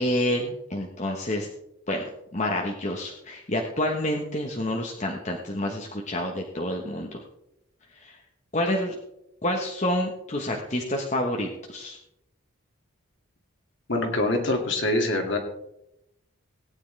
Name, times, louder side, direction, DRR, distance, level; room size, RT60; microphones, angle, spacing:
voice 1, 0.0-1.5 1.9-7.2 7.9-8.2 8.5-9.0 9.4-12.0, left 1 dB, 35° left, 0 dB, 1.2 m, -28 dB
voice 2, 13.9-15.4, left 2 dB, 55° left, 3 dB, 2.1 m, -24 dB
18.5 x 9.7 x 3.3 m, 0.83 s
head